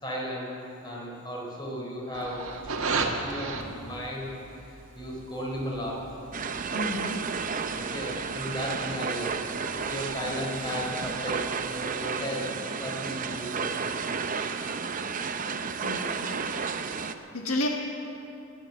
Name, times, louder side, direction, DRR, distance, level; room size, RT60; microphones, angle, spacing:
voice 1, 0.0-0.5 0.8-2.4 2.8-6.1 7.1-7.5 7.7-9.4 9.9-12.5 12.8-13.7, equal, 20° left, -3 dB, 3.8 m, -35 dB
sound 1, 2.1-11.8, right 3 dB, 80° right, 1.5 m, -38 dB
sound 2, 6.3-17.2, right 5 dB, 40° right, 0.6 m, -32 dB
voice 2, 6.7-7.3 15.8-16.5 17.3-17.7, left 1 dB, 90° left, 1 dB, 1.6 m, -31 dB
19.0 x 9.6 x 7.2 m, 2.8 s
head